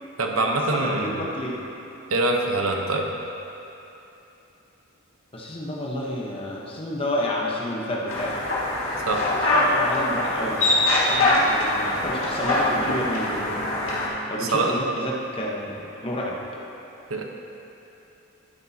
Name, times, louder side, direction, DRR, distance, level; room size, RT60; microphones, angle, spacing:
voice 1, 0.2-1.2 2.1-3.1 9.1-9.2 14.4-14.7 17.1-17.2, right 2 dB, 85° right, 1 dB, 1.0 m, -24 dB
voice 2, 0.7-1.6 5.3-8.4 9.5-10.6 11.0-13.8 14.3-16.4, left 1 dB, 25° left, -3 dB, 1.1 m, -30 dB
sound 1, 8.1-14.1, left 2 dB, 65° left, 2.0 m, -23 dB
12.5 x 9.4 x 2.8 m, 2.9 s
head